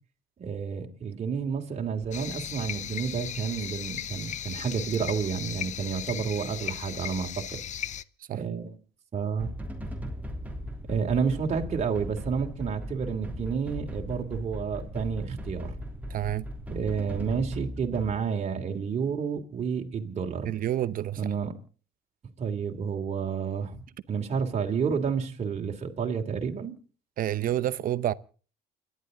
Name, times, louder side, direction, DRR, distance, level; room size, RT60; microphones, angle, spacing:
voice 1, 0.4-7.6 8.3-8.7 9.1-9.5 10.9-15.8 16.7-20.5 21.2-21.5 22.4-23.8 24.1-26.7, right 6 dB, 40° right, 3.0 m, -30 dB
sound 1, 2.1-8.0, left 10 dB, 45° left, 0.7 m, -37 dB
sound 2, 9.4-18.1, equal, 10° right, 3.1 m, -38 dB
voice 2, 16.1-16.5 20.4-21.3 27.2-28.1, right 12 dB, 55° right, 0.8 m, -28 dB
29.5 x 11.5 x 3.9 m
cardioid pair, 110°, 17 cm